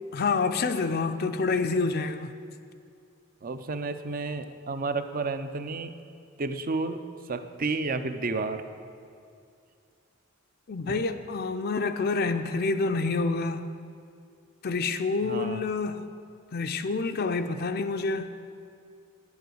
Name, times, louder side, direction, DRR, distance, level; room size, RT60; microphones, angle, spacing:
voice 1, 0.1-2.3 10.7-13.7 14.6-16.0 16.5-18.3, left 4 dB, 45° left, 7 dB, 0.5 m, -27 dB
voice 2, 3.4-5.9 6.4-8.6 10.9-11.0 15.2-15.6, right 3 dB, 40° right, 10 dB, 0.6 m, -31 dB
9.6 x 9.3 x 7.8 m, 2.4 s
head